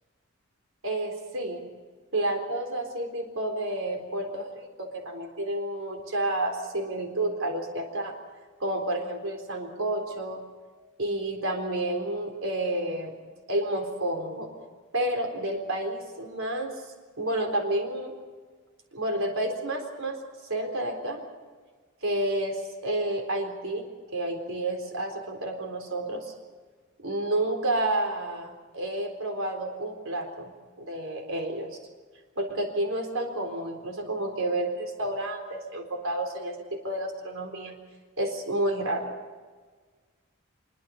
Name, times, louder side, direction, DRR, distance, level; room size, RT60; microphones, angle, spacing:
voice 1, 0.8-1.7 2.1-8.1 8.6-10.4 11.0-13.1 13.5-14.5 14.9-16.7 17.2-18.1 18.9-20.2 20.5-21.2 22.0-26.3 27.0-31.8 32.4-37.8 38.2-39.1, right 1 dB, 70° right, 4 dB, 4.0 m, -30 dB
26.0 x 23.5 x 5.4 m, 1.5 s
head